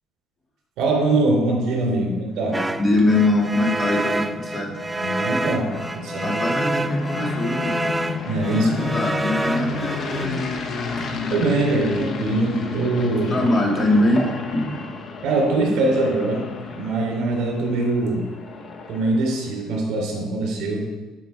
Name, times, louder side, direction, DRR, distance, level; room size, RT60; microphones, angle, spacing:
voice 1, 0.8-2.6 5.0-6.3 8.3-8.7 11.3-13.4 15.2-16.4 16.7-18.2 18.9-20.8, right 2 dB, 70° right, 0 dB, 3.6 m, -22 dB
sound 1, 2.3-19.5, left 4 dB, 45° left, 1.0 m, -32 dB
sound 2, 2.5-10.3, right 2 dB, 10° right, 0.3 m, -28 dB
voice 2, 2.8-4.7 6.2-7.9 8.6-10.4 11.0-11.1 13.3-14.9, left 1 dB, 25° left, 0 dB, 2.1 m, -22 dB
11.5 x 5.9 x 4.7 m, 1.3 s
cardioid pair, 130°, 0 cm